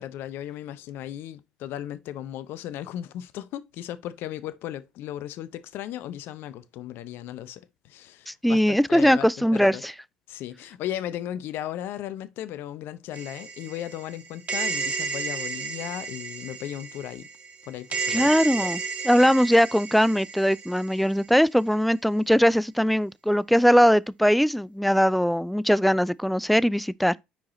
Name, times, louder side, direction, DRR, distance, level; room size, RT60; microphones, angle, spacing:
voice 1, 0.0-9.8 10.3-17.3 17.7-18.3, left 12 dB, 60° left, 0.6 m, -36 dB
voice 2, 8.3-9.9 18.1-27.2, equal, ahead, 0.4 m, -21 dB
sound 1, 13.1-21.2, right 4 dB, 30° right, 2.0 m, -33 dB
6.3 x 4.8 x 4.1 m
hypercardioid pair, 65°, 4 cm